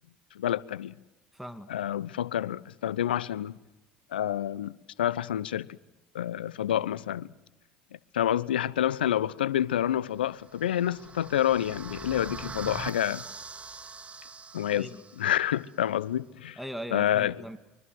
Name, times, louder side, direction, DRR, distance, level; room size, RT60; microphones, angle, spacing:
voice 1, 0.3-0.9 1.7-3.6 4.1-4.7 5.0-5.7 6.1-7.3 8.1-13.2 14.5-14.9 15.2-16.6 16.9-17.4, left 11 dB, 80° left, 0.9 m, -28 dB
voice 2, 1.3-1.7 14.8-15.0 16.6-17.6, equal, ahead, 2.2 m, -39 dB
sound 1, 10.3-15.4, right 4 dB, 25° right, 1.3 m, -43 dB
25.0 x 23.0 x 7.8 m
hypercardioid pair, 70°, 5 cm